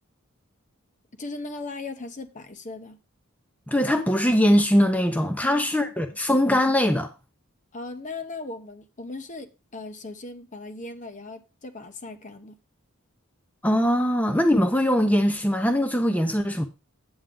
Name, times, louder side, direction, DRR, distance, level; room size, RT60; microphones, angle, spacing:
voice 1, 1.2-3.0 5.4-5.7 7.7-12.6, left 3 dB, 35° left, 0.8 m, -38 dB
voice 2, 3.7-7.1 13.6-16.7, equal, 5° left, 0.7 m, -21 dB
8.8 x 8.1 x 3.7 m
head